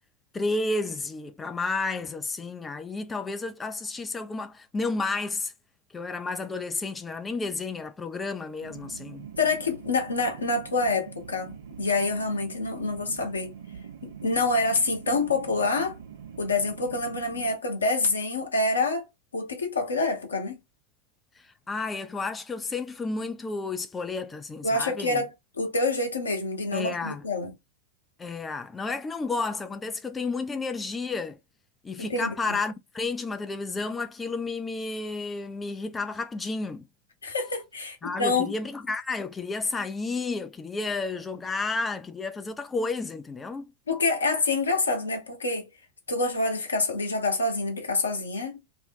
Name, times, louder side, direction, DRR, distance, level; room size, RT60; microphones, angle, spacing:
voice 1, 0.3-5.5 5.9-9.3 21.4-25.2 26.7-27.2 28.2-31.4 31.8-36.9 38.0-43.7, left 3 dB, 15° left, 0.3 m, -31 dB
sound 1, 8.6-17.5, right 7 dB, 60° right, 0.5 m, -44 dB
voice 2, 9.4-13.5 14.0-16.0 16.4-19.0 19.3-20.6 24.6-25.3 25.6-27.5 32.0-32.6 37.2-38.5 43.9-45.7 46.1-48.6, left 3 dB, 75° left, 0.8 m, -27 dB
2.6 x 2.1 x 2.6 m
figure-of-eight pair, 90°, 0 cm